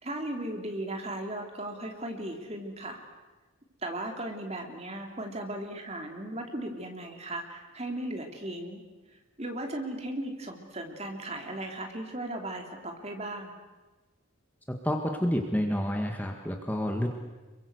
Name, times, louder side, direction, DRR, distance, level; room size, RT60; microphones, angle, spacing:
voice 1, 0.0-3.0 3.8-8.8 9.4-13.5, right 1 dB, 30° right, 3 dB, 3.2 m, -36 dB
voice 2, 14.8-17.1, equal, 10° left, 3 dB, 1.8 m, -29 dB
27.5 x 23.0 x 8.1 m, 1.2 s
head